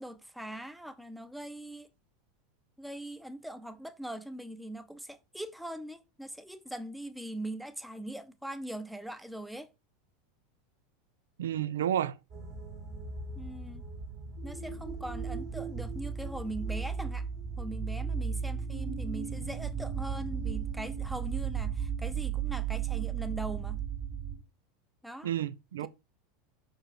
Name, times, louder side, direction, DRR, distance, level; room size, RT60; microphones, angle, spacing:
voice 1, 0.0-1.9 2.8-9.7 13.4-13.8 14.4-17.3 17.6-23.8 25.0-25.3 25.8-25.9, right 1 dB, ahead, 0.8 m, -41 dB
voice 2, 11.4-12.2 25.2-25.9, right 11 dB, 65° right, 0.5 m, -31 dB
sound 1, 12.3-24.4, right 7 dB, 40° right, 2.0 m, -35 dB
6.2 x 4.7 x 4.7 m
figure-of-eight pair, 80°, 0 cm